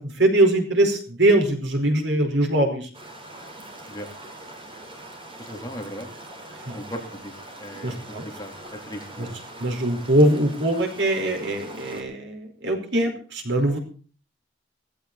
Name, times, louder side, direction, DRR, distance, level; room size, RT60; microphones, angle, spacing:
voice 1, 0.0-2.9 6.7-6.8 7.8-8.2 9.2-9.3 9.6-13.8, right 1 dB, 75° right, 2 dB, 5.0 m, -22 dB
sound 1, 2.9-12.0, right 1 dB, 30° right, 4.7 m, -42 dB
voice 2, 5.4-6.1 6.7-7.3 7.6-9.3, equal, 20° left, 1 dB, 3.7 m, -37 dB
17.0 x 15.5 x 4.3 m, 0.39 s
head